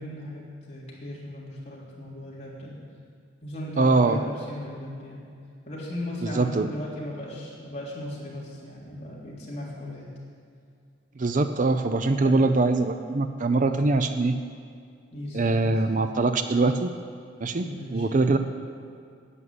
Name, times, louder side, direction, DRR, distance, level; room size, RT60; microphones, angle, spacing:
voice 1, 0.0-2.7 3.4-5.2 5.7-10.1 12.2-12.4 15.1-15.8 17.6-18.4, left 1 dB, 35° left, -6 dB, 3.6 m, -37 dB
voice 2, 3.8-4.2 6.2-6.7 11.2-14.4 15.3-16.9 17.4-18.4, right 3 dB, 40° right, 8 dB, 0.5 m, -23 dB
11.0 x 8.4 x 9.6 m, 2.3 s
head